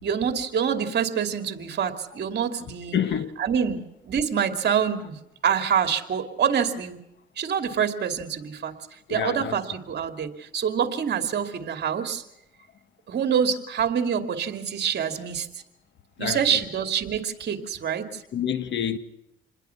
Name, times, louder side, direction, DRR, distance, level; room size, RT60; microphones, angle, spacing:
voice 1, 0.0-3.0 3.4-7.0 7.4-12.2 13.1-15.5 16.2-18.2, right 7 dB, 55° right, 2.7 m, -26 dB
voice 2, 2.9-3.3 9.1-9.6 16.2-16.6 18.3-19.0, left 9 dB, 65° left, 1.8 m, -27 dB
28.0 x 21.0 x 5.9 m
cardioid pair, 90°, 20 cm